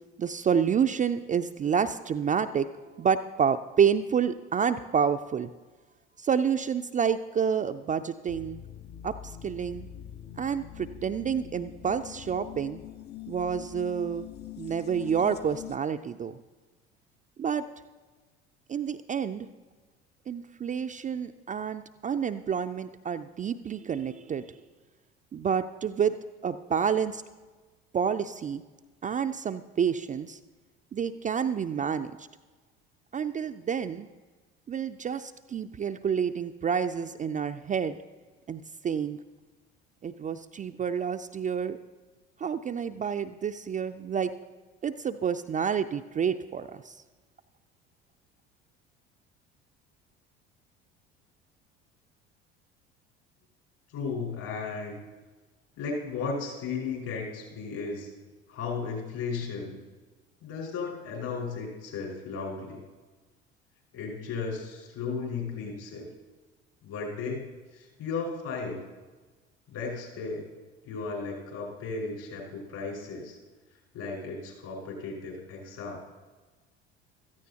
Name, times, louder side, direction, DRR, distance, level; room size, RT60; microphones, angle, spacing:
voice 1, 0.2-2.7 3.0-5.5 6.2-8.6 9.0-9.1 9.4-9.9 10.4-12.8 13.3-14.3 14.6-16.4 17.4-17.6 18.7-19.5 20.3-24.5 25.3-26.2 26.4-27.2 27.9-28.6 29.0-30.4 30.9-32.3 33.1-34.1 34.7-38.0 38.5-39.2 40.0-41.8 42.4-44.3 44.8-47.0, right 7 dB, 25° right, 7 dB, 0.4 m, -29 dB
sound 1, 8.3-15.8, left 12 dB, 35° left, 0.6 m, -44 dB
voice 2, 53.9-55.0 55.8-58.1 58.5-59.8 60.4-62.8 63.9-66.1 66.8-68.8 69.7-70.4 70.8-73.4 73.9-76.0, left 4 dB, 60° left, -2 dB, 4.9 m, -35 dB
16.0 x 13.5 x 2.9 m, 1.3 s
hypercardioid pair, 65°, 32 cm